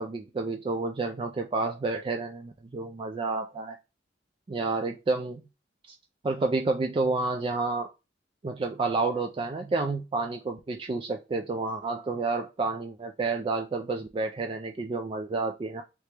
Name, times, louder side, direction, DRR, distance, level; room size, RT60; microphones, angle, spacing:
voice 1, 0.0-3.8 4.5-5.4 5.9-6.0 6.2-7.9 8.4-15.8, right 3 dB, 30° right, 4 dB, 0.3 m, -30 dB
3.2 x 2.9 x 3.2 m, 0.27 s
head